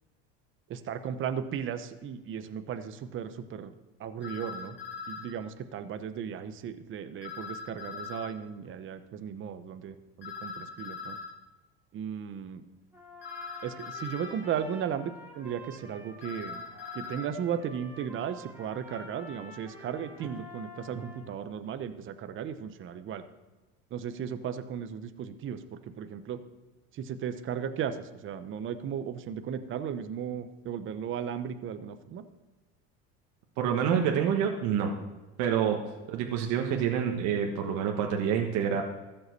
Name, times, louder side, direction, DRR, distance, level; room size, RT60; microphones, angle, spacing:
voice 1, 0.7-3.7 4.0-4.8 5.1-11.2 11.9-12.6 13.6-16.6 16.9-23.2 23.9-26.4 26.9-32.2, right 8 dB, 40° right, 10 dB, 0.9 m, -36 dB
sound 1, 4.2-5.3 7.2-8.3 10.2-11.4 13.2-14.4 16.2-17.3, left 5 dB, 35° left, 1.7 m, -41 dB
Trumpet, 12.9-21.3, equal, 5° right, 2.5 m, -49 dB
voice 2, 33.6-34.9 35.4-35.8 36.1-38.8, right 8 dB, 65° right, 2 dB, 1.4 m, -27 dB
14.5 x 5.7 x 6.7 m, 1.2 s
supercardioid pair, 115°, 30 cm